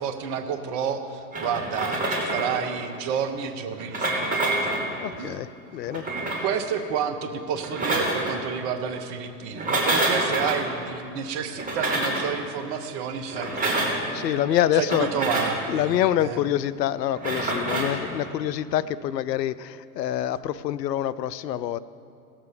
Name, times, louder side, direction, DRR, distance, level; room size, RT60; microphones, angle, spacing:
voice 1, 0.0-4.8 5.1-5.4 6.4-14.4 14.7-16.4, right 7 dB, 50° right, 8 dB, 1.2 m, -30 dB
sound 1, 1.3-2.6 3.7-4.9 5.8-6.5 7.5-8.3 9.5-10.6 11.5-12.3 13.3-14.0 14.8-15.6 17.1-18.0, right 2 dB, 15° right, 3.2 m, -27 dB
voice 2, 5.0-6.6 13.6-13.7 14.1-15.1 15.7-21.8, left 11 dB, 85° left, 17 dB, 0.6 m, -26 dB
18.0 x 7.5 x 4.9 m, 2.6 s
hypercardioid pair, 90°, 48 cm